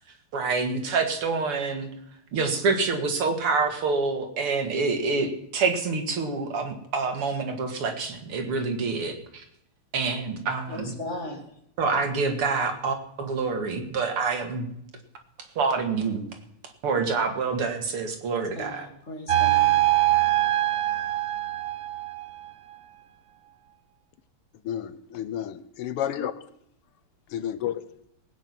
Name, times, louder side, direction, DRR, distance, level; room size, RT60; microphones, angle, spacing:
voice 1, 0.3-1.9 2.3-9.4 9.9-11.0 11.8-14.7 15.6-16.2 16.8-18.9, right 4 dB, 80° right, 3.0 m, -27 dB
voice 2, 10.7-11.4 18.5-19.8, left 1 dB, 30° left, 2.9 m, -37 dB
sound 1, 19.3-22.5, right 15 dB, 65° right, 0.8 m, -23 dB
voice 3, 24.6-26.3 27.3-27.9, left 10 dB, 90° left, 1.9 m, -31 dB
19.0 x 9.5 x 6.0 m
omnidirectional pair, 2.4 m